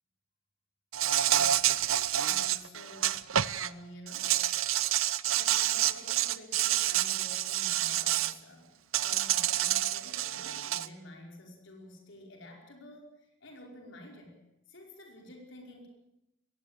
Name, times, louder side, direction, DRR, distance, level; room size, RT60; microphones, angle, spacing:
Insect, 0.9-3.7 4.1-8.3 8.9-10.9, right 12 dB, 85° right, 0.8 m, -28 dB
voice 1, 1.2-3.2 3.5-4.4 5.3-8.7 9.0-14.4 14.7-15.9, left 1 dB, 65° left, 2 dB, 5.3 m, -50 dB
21.0 x 16.5 x 9.0 m, 0.88 s
head